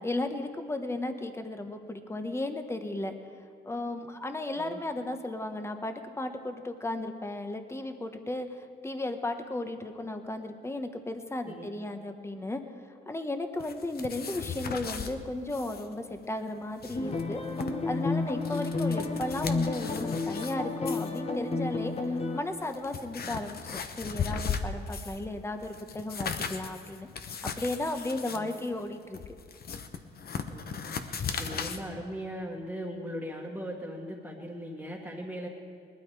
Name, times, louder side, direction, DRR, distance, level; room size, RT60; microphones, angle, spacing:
voice 1, 0.0-3.1 3.6-12.6 13.1-17.4 17.9-22.0 22.3-27.1 27.6-29.2, left 2 dB, 15° left, 7 dB, 1.2 m, -35 dB
voice 2, 11.5-11.8 18.5-18.9 28.3-28.5 30.5-35.5, equal, 10° right, -2 dB, 1.8 m, -39 dB
sound 1, 13.6-15.1 15.5-15.9 16.1-16.2 16.6-17.7 18.2-20.5 20.9-21.2 22.0-22.1 22.6-25.2 25.6-31.8, left 6 dB, 50° left, 1.0 m, -37 dB
sound 2, 16.9-22.4, left 3 dB, 30° left, 1.3 m, -31 dB
20.0 x 12.5 x 4.8 m, 2.2 s
cardioid pair, 90°, 20 cm